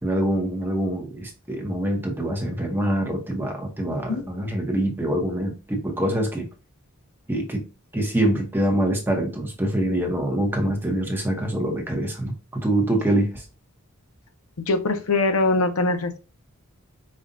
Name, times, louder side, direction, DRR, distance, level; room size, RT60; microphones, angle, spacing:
voice 1, 0.0-6.5 7.3-7.7 7.9-13.4, right 1 dB, 10° right, 2 dB, 1.0 m, -25 dB
voice 2, 14.7-16.2, left 3 dB, 80° left, 7 dB, 0.7 m, -22 dB
5.3 x 2.4 x 2.6 m, 0.31 s
head